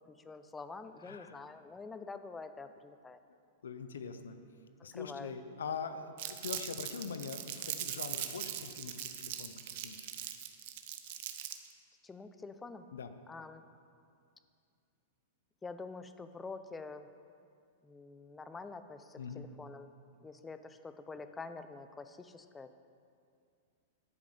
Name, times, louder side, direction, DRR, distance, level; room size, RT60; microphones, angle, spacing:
voice 1, 0.1-3.2 4.8-5.3 12.0-12.9 13.3-13.6 15.6-17.0 17.8-19.9 20.2-22.8, left 4 dB, 10° left, 10 dB, 0.5 m, -47 dB
voice 2, 1.0-1.4 3.6-4.4 4.8-10.1 12.9-13.1 19.2-19.4, left 6 dB, 90° left, 9 dB, 0.7 m, -43 dB
Crumpling crinkling, 6.2-11.7, right 11 dB, 55° right, 0.8 m, -41 dB
11.0 x 5.1 x 7.7 m, 2.4 s
hypercardioid pair, 130°, 0 cm